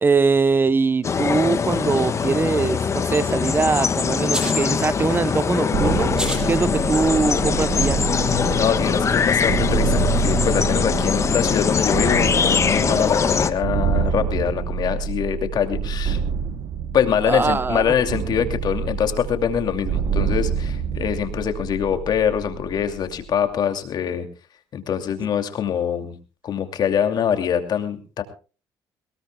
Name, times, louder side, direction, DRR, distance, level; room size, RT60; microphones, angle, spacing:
voice 1, 0.0-6.1 6.5-8.0 12.8-13.0 17.3-17.9, right 4 dB, 25° right, 15 dB, 0.9 m, -22 dB
sound 1, 1.0-13.5, left 6 dB, 40° left, 1.2 m, -22 dB
sound 2, 4.2-4.7 6.0-6.5 6.9-7.0 8.5-8.6 9.0-10.9, equal, 10° right, 7.2 m, -33 dB
sound 3, 5.7-23.4, right 6 dB, 70° right, 1.0 m, -27 dB
voice 2, 8.6-16.2 16.9-24.3 24.7-26.2 26.4-28.2, left 8 dB, 60° left, 7 dB, 2.6 m, -24 dB
22.5 x 19.5 x 2.3 m, 0.35 s
cardioid pair, 95°, 8 cm